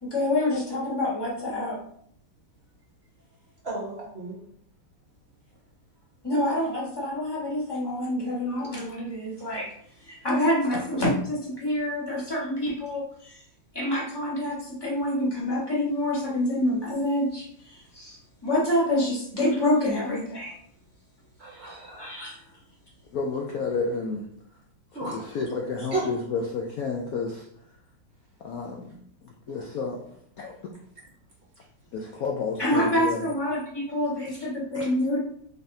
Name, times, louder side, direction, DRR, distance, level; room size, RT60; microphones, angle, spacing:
voice 1, 0.0-1.8 6.2-9.7 10.1-13.4 13.7-20.5 22.0-22.4 32.6-35.2, left 1 dB, 15° left, -5 dB, 1.1 m, -27 dB
voice 2, 3.6-4.4 21.4-22.1 24.9-25.4 25.9-26.1, right 3 dB, 45° right, -3 dB, 0.9 m, -33 dB
voice 3, 23.1-24.2 25.0-27.4 28.4-28.9 29.5-30.0 30.4-30.6 31.9-33.2, left 4 dB, 75° left, 0 dB, 0.8 m, -30 dB
4.1 x 3.4 x 2.6 m, 0.66 s
omnidirectional pair, 2.0 m